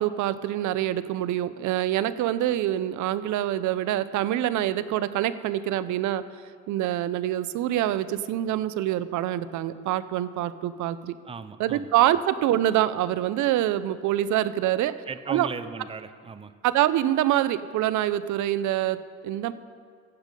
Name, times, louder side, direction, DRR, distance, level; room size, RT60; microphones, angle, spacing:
voice 1, 0.0-6.2 6.7-11.2 11.6-15.0 15.3-15.5 16.6-19.5, right 13 dB, 75° right, 15 dB, 0.6 m, -25 dB
voice 2, 11.3-11.9 15.1-16.5, right 5 dB, 20° right, 13 dB, 0.5 m, -37 dB
15.0 x 8.1 x 5.3 m, 2.1 s
cardioid pair, 105°, 30 cm